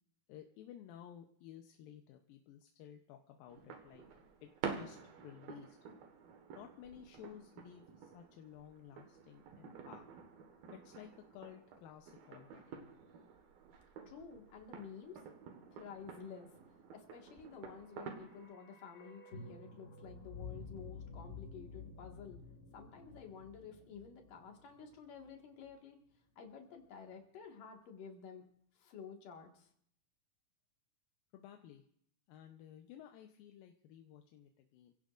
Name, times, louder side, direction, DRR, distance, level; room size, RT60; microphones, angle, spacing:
voice 1, 0.3-4.0 4.4-5.8 6.5-10.1 10.8-12.6 31.3-31.8 32.3-34.9, left 10 dB, 85° left, 4 dB, 2.6 m, -55 dB
sound 1, 3.5-18.5, right 6 dB, 90° right, 3.4 m, -50 dB
voice 2, 14.1-15.2 15.7-16.5 16.9-22.4 22.7-26.0 26.4-28.5 28.7-29.7, left 6 dB, 70° left, 2 dB, 3.4 m, -51 dB
sound 2, 17.6-25.7 26.0-26.1, left 4 dB, 35° left, 2.2 m, -52 dB
26.5 x 16.5 x 2.5 m, 0.66 s
omnidirectional pair, 4.1 m